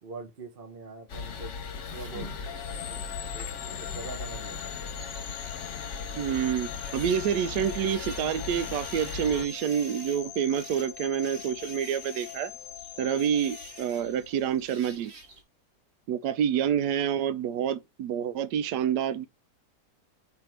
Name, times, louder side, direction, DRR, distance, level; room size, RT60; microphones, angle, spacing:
voice 1, 0.0-1.6 1.9-3.1 3.3-4.7 16.5-16.7, right 3 dB, 40° right, 1.0 m, -44 dB
sound 1, 1.1-9.5, left 5 dB, 55° left, 1.1 m, -38 dB
sound 2, 1.2-15.4, right 3 dB, 70° right, 1.9 m, -50 dB
sound 3, 2.5-14.6, left 11 dB, 75° left, 1.1 m, -43 dB
voice 2, 6.2-12.5 13.0-15.1 16.1-19.3, right 9 dB, 90° right, 1.2 m, -28 dB
5.8 x 3.6 x 4.5 m
omnidirectional pair, 1.7 m